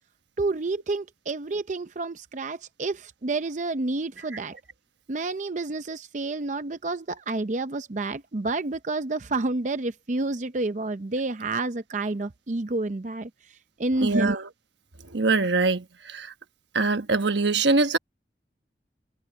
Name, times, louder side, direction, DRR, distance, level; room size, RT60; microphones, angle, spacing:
voice 1, 0.4-4.5 5.1-13.3 13.8-14.4, right 2 dB, 45° right, 0.6 m, -29 dB
voice 2, 14.0-14.5 15.1-16.3 16.7-18.0, right 3 dB, 85° right, 1.2 m, -23 dB
head